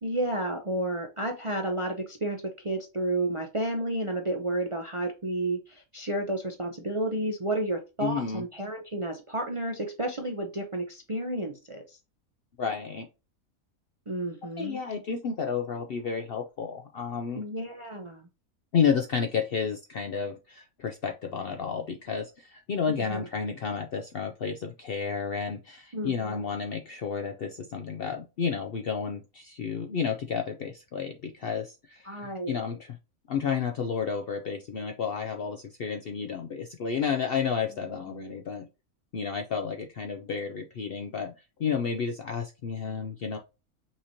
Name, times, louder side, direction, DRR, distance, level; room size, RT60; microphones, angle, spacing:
voice 1, 0.0-11.8 14.1-14.8 17.3-18.2 23.1-23.2 25.9-26.4 32.1-32.6 37.8-38.4, right 1 dB, 35° right, 4 dB, 0.5 m, -31 dB
voice 2, 8.0-8.4 12.6-13.1 14.6-17.4 18.7-33.0 33.3-38.7 39.1-41.3 41.6-43.4, left 6 dB, 60° left, 4 dB, 0.6 m, -31 dB
5.6 x 2.9 x 2.7 m, 0.27 s
omnidirectional pair, 1.5 m